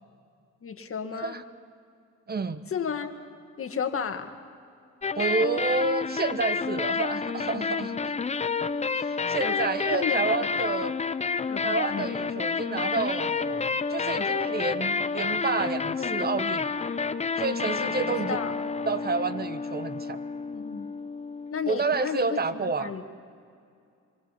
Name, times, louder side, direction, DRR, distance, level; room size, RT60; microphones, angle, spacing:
voice 1, 0.6-1.4 2.7-3.1 3.6-4.3 9.4-10.7 11.5-12.1 16.0-16.2 18.1-18.6 20.3-20.9 21.5-23.0, left 7 dB, 45° left, 7 dB, 1.8 m, -33 dB
voice 2, 2.3-2.6 5.1-8.1 9.0-10.9 11.6-16.9 17.4-18.4 18.9-20.2 21.7-22.9, right 4 dB, 30° right, 12 dB, 1.1 m, -29 dB
sound 1, 5.0-21.9, left 5 dB, 20° left, 0.6 m, -29 dB
25.5 x 23.5 x 5.8 m, 2.4 s
cardioid pair, 90°, 30 cm